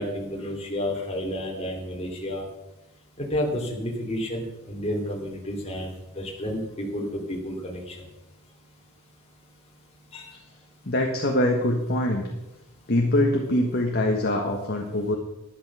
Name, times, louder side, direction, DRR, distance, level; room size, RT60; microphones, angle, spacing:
voice 1, 0.0-2.5 3.2-7.9 10.1-10.3, equal, 30° left, -1 dB, 2.9 m, -31 dB
voice 2, 10.8-12.2 12.9-15.2, left 1 dB, 50° left, 1 dB, 1.4 m, -23 dB
11.5 x 10.5 x 6.1 m, 0.97 s
head